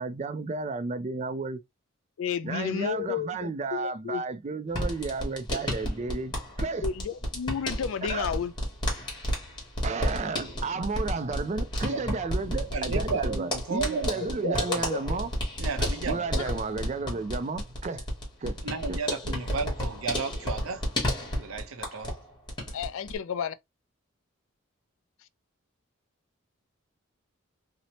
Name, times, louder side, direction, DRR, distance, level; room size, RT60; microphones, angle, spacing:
voice 1, 0.0-1.6 2.4-6.8 8.1-8.3 9.8-15.3 16.1-18.1 18.4-18.6 18.9-19.0, right 4 dB, 35° right, 0.3 m, -33 dB
voice 2, 2.2-4.2 6.8-8.5 14.4-15.2 16.3-16.4 22.7-23.5, left 7 dB, 70° left, 0.3 m, -32 dB
sound 1, 4.7-22.2 22.5-23.2, equal, 20° left, 1.0 m, -32 dB
voice 3, 10.3-10.8 11.1-12.2 12.7-15.2 15.6-16.6 18.6-20.8 21.4-22.1, right 4 dB, 75° right, 0.6 m, -34 dB
2.8 x 2.0 x 2.8 m
head